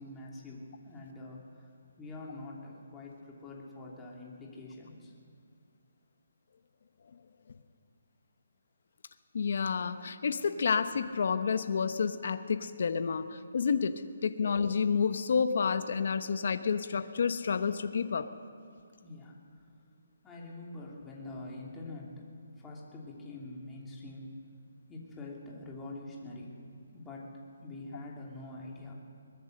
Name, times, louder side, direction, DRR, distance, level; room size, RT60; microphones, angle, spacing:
voice 1, 0.0-1.7 2.0-5.1 19.0-19.4 19.9-20.0 20.2-22.3 22.6-24.3 24.9-26.5 26.9-27.3 27.6-28.9, left 2 dB, 10° left, -3 dB, 3.0 m, -45 dB
voice 2, 9.3-18.3, left 6 dB, 60° left, 10 dB, 1.1 m, -30 dB
22.5 x 20.5 x 6.7 m, 2.3 s
hypercardioid pair, 165°, 0 cm